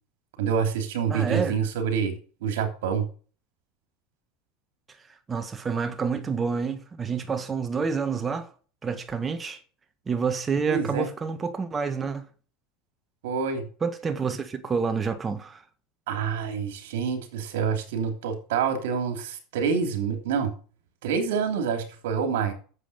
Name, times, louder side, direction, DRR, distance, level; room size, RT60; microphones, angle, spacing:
voice 1, 0.4-2.1 2.4-3.1 10.7-11.1 13.2-13.7 16.1-20.5 21.0-22.5, right 6 dB, 85° right, 3.1 m, -27 dB
voice 2, 1.1-1.6 5.3-8.5 8.8-9.6 10.1-12.3 13.8-15.6, right 5 dB, 20° right, 1.6 m, -28 dB
9.9 x 7.6 x 6.9 m
supercardioid pair, 130°, 0 cm